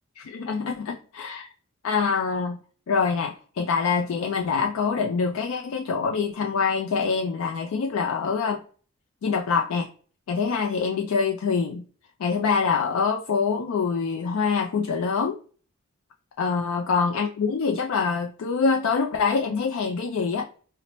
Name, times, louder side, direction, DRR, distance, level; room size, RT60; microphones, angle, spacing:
voice 1, 0.2-1.5 1.8-2.6 2.9-8.6 9.2-9.9 10.3-11.8 12.2-15.4 16.4-20.5, left 5 dB, 85° left, 3 dB, 0.4 m, -25 dB
4.0 x 2.0 x 2.9 m, 0.42 s
head